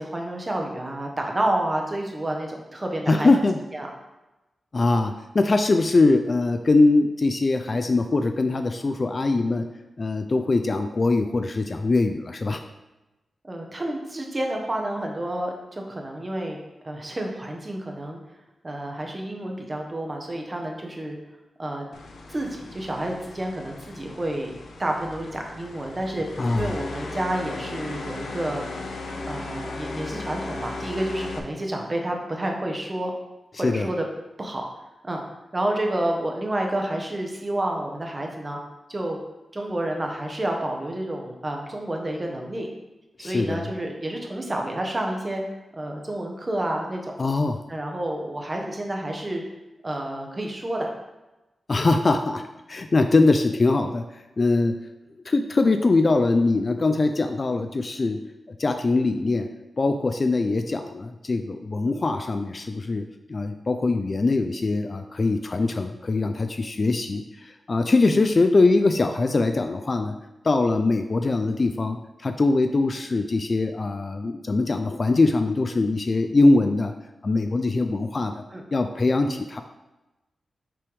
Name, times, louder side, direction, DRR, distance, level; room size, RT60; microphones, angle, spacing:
voice 1, 0.0-3.3 3.7-3.9 13.4-18.2 18.6-21.2 21.6-21.9 22.3-24.5 24.8-28.6 29.2-33.1 33.6-34.0 34.4-34.7 35.0-35.2 35.5-38.6 38.9-39.2 39.5-42.7 43.2-45.4 45.7-47.1 47.7-49.4 49.8-50.9 78.5-78.6, right 1 dB, 25° right, 1 dB, 0.9 m, -29 dB
voice 2, 3.1-3.6 4.7-9.6 10.0-12.6 26.4-26.7 33.6-33.9 43.2-43.7 47.2-47.6 51.7-52.4 52.7-54.0 54.4-54.7 55.3-58.2 58.6-59.5 59.8-63.0 63.3-70.1 70.4-76.9 77.2-78.4 78.7-79.6, left 3 dB, 35° left, 6 dB, 0.3 m, -22 dB
sound 1, 21.9-31.4, left 3 dB, 85° left, 0.7 m, -36 dB
5.9 x 3.4 x 4.7 m, 1.0 s
wide cardioid pair, 130°, 0 cm